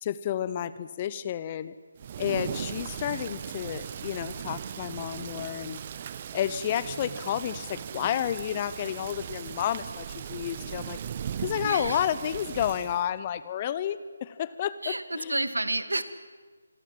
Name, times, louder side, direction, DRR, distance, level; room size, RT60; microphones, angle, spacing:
voice 1, 0.0-1.7 2.2-5.8 6.3-11.0 11.4-15.5, left 10 dB, 25° left, 16 dB, 0.8 m, -31 dB
Thunder / Rain, 2.0-13.1, right 8 dB, 30° right, 0.9 m, -38 dB
voice 2, 11.6-12.0 14.8-16.0, right 2 dB, 80° right, 12 dB, 2.1 m, -30 dB
26.0 x 23.5 x 7.7 m, 1.4 s
figure-of-eight pair, 155°, 0 cm